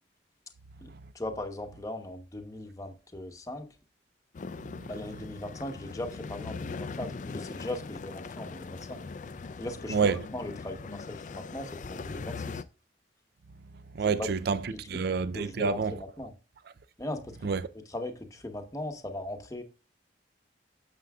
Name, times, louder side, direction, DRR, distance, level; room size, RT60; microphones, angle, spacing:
voice 1, 0.8-3.7 4.9-9.1 9.6-12.6 14.2-14.3 14.7-14.8 15.3-16.3 17.0-19.6, left 1 dB, 20° left, 0.9 m, -39 dB
sound 1, 4.3-12.6, left 4 dB, 45° left, 0.4 m, -40 dB
voice 2, 9.9-10.2 13.9-16.0 17.4-17.6, right 5 dB, 60° right, 0.4 m, -28 dB
9.4 x 6.7 x 2.3 m
head